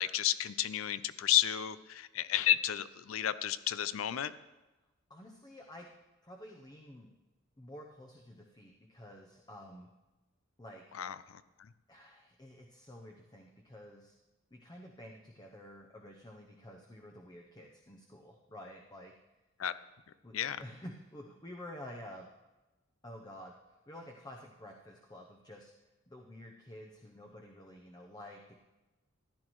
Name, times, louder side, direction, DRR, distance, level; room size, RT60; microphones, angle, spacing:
voice 1, 0.0-4.3 10.9-11.2 19.6-19.7 20.3-20.6, left 11 dB, 80° left, 15 dB, 0.5 m, -31 dB
voice 2, 5.1-5.9 6.2-7.1 7.6-9.9 10.6-10.8 11.9-14.1 14.5-19.1 20.2-22.3 23.0-23.5 23.9-25.7 26.1-28.5, left 1 dB, 20° left, 1 dB, 0.7 m, -50 dB
15.0 x 10.5 x 3.1 m, 1.1 s
head